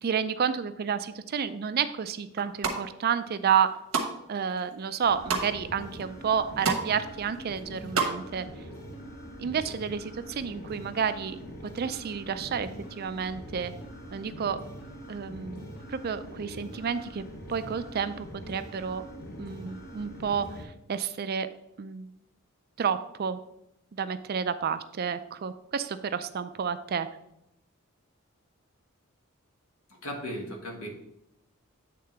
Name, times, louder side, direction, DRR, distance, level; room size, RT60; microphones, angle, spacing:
voice 1, 0.0-3.7 4.3-8.5 9.4-12.7 13.0-13.7 14.1-14.6 15.1-17.2 17.5-19.0 19.4-21.5 21.8-22.1 22.8-23.4 23.9-27.1, right 7 dB, 45° right, 12 dB, 0.4 m, -30 dB
sound 1, 2.3-2.8 3.4-4.1 4.5-5.5 6.0-6.1 6.3-6.9 7.1-8.1 8.4-8.5, right 4 dB, 90° right, 1.2 m, -29 dB
sound 2, 5.0-20.6, equal, 50° left, 1.1 m, -43 dB
voice 2, 29.9-30.9, equal, 85° left, 0 dB, 1.6 m, -36 dB
8.5 x 3.7 x 4.4 m, 0.82 s
head